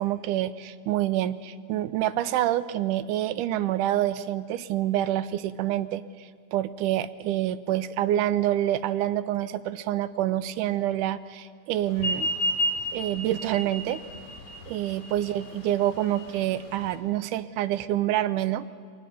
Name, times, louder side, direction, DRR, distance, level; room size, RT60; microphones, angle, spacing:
voice 1, 0.0-12.3 12.9-14.0 14.7-18.7, right 13 dB, 80° right, 15 dB, 2.1 m, -27 dB
sound 1, 11.9-17.0, equal, 40° left, 3.6 m, -31 dB
22.5 x 19.0 x 6.8 m, 2.2 s
omnidirectional pair, 3.7 m